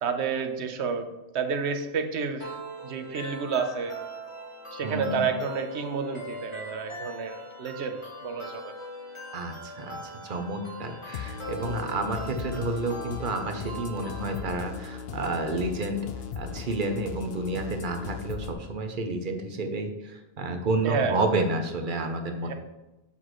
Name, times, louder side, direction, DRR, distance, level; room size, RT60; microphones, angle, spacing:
voice 1, 0.0-2.6 2.8-4.0 4.7-8.8 11.6-12.1 20.8-21.2 22.4-22.5, right 5 dB, 75° right, 7 dB, 1.0 m, -30 dB
sound 1, 2.4-14.4, equal, 25° left, 1.4 m, -41 dB
voice 2, 4.8-5.2 9.3-16.0 16.4-22.5, right 2 dB, 50° right, 6 dB, 0.9 m, -30 dB
sound 2, 11.1-18.5, left 7 dB, 65° left, 0.8 m, -38 dB
7.2 x 6.1 x 3.1 m, 1.0 s
omnidirectional pair, 1.2 m